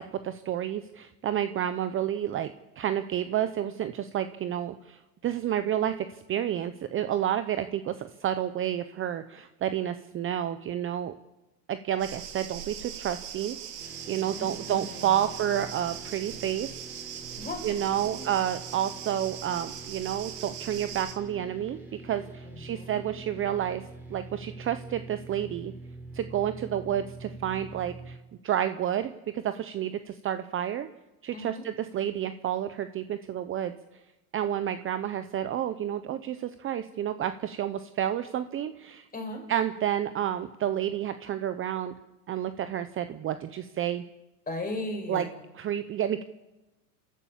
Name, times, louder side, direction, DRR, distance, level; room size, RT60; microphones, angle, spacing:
voice 1, 0.0-2.5 2.8-5.9 6.3-11.1 11.7-13.6 14.1-16.7 17.6-21.8 22.0-23.8 24.1-25.7 26.1-28.2 28.4-30.9 31.2-33.7 34.3-39.1 39.5-41.9 42.3-44.0 45.1-45.3 45.6-46.2, right 10 dB, 25° right, 11 dB, 0.8 m, -30 dB
sound 1, 12.0-21.1, right 9 dB, 80° right, 3.2 m, -41 dB
sound 2, 13.8-28.2, right 2 dB, 5° right, 4.9 m, -45 dB
voice 2, 14.2-15.2 17.4-17.7 17.9-18.3 22.4-23.0 31.3-31.7 39.1-39.5 44.5-45.3, left 2 dB, 20° left, 3 dB, 5.7 m, -37 dB
28.0 x 13.0 x 7.4 m, 1.0 s
supercardioid pair, 125°, 46 cm